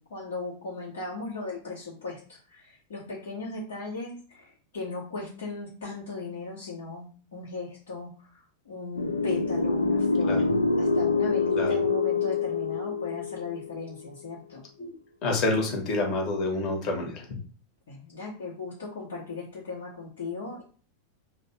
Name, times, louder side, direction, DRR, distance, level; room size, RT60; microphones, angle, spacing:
voice 1, 0.0-14.6 17.9-20.6, left 3 dB, 60° left, -7 dB, 1.2 m, -37 dB
sound 1, 9.0-14.1, left 3 dB, 75° left, 0.4 m, -26 dB
voice 2, 15.2-17.3, left 2 dB, 35° left, 1 dB, 1.3 m, -28 dB
3.2 x 2.2 x 4.3 m, 0.40 s
figure-of-eight pair, 90°, 0 cm